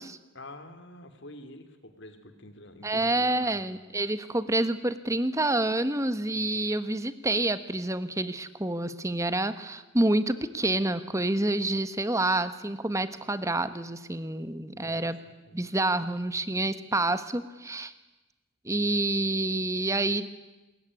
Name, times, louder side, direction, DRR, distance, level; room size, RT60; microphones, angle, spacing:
voice 1, 0.3-3.6 14.7-15.1 15.5-15.6, left 1 dB, 55° left, 8 dB, 3.2 m, -47 dB
voice 2, 2.8-15.2 15.5-17.9 18.6-20.3, right 2 dB, 15° right, 12 dB, 1.3 m, -28 dB
27.5 x 21.0 x 9.9 m, 1.1 s
head